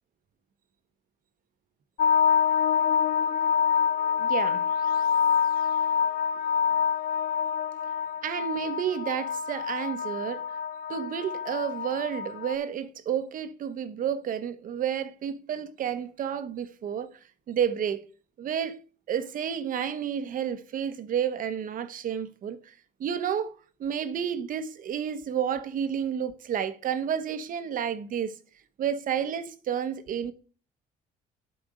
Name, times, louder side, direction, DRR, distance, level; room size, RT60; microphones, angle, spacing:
sound 1, 2.0-12.6, left 7 dB, 60° left, 0.6 m, -26 dB
voice 1, 4.2-4.6 8.2-10.4 10.9-17.1 17.5-18.0 18.4-18.8 19.1-22.7 23.0-23.5 23.8-28.3 28.8-30.3, right 8 dB, 55° right, 1.0 m, -30 dB
8.7 x 4.3 x 6.4 m
cardioid pair, 110°, 17 cm